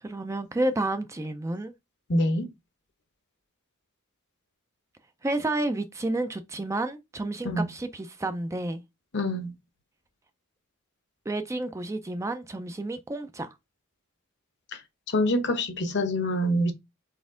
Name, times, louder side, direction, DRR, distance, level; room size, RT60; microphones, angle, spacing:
voice 1, 0.0-1.7 5.2-8.8 11.3-13.5, right 2 dB, 15° right, 0.4 m, -30 dB
voice 2, 2.1-2.5 7.4-7.7 9.1-9.5 14.7-14.8 15.1-16.7, left 1 dB, 55° left, 0.8 m, -25 dB
4.2 x 3.4 x 3.6 m
head